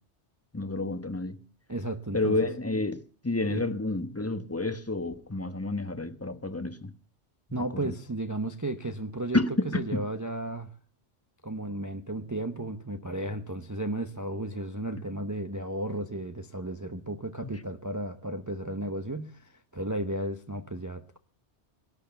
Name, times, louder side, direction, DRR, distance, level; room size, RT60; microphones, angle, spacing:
voice 1, 0.5-1.4 2.1-6.9 7.8-7.9 9.3-9.7 9.9-10.0, left 2 dB, 15° left, 1.1 m, -29 dB
voice 2, 1.7-2.4 3.5-3.6 7.5-9.4 9.7-10.7 11.4-21.2, right 1 dB, 20° right, 0.8 m, -34 dB
18.0 x 11.0 x 6.9 m
omnidirectional pair, 1.2 m